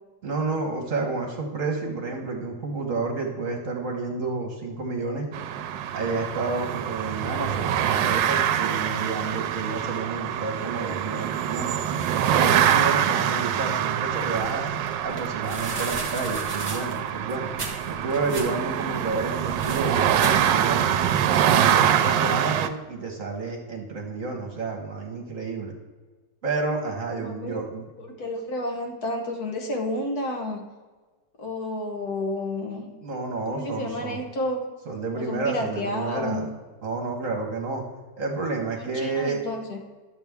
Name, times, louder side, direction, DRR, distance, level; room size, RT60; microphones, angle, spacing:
voice 1, 0.2-5.3 5.9-11.7 12.4-14.7 15.0-17.5 17.9-20.9 21.5-25.7 26.4-27.9 33.0-34.2 34.9-36.5 36.8-37.8 38.2-39.4, right 3 dB, 50° right, 1 dB, 1.4 m, -30 dB
sound 1, 5.3-22.7, right 10 dB, 80° right, 1.2 m, -25 dB
sound 2, 14.1-21.0, right 2 dB, 20° right, 1.3 m, -38 dB
voice 2, 22.0-22.4 27.1-27.6 28.0-30.6 31.4-32.9 33.5-34.6 35.2-36.5 38.8-39.8, left 1 dB, 60° left, 2 dB, 1.5 m, -31 dB
11.0 x 7.2 x 3.5 m, 1.3 s
omnidirectional pair, 2.0 m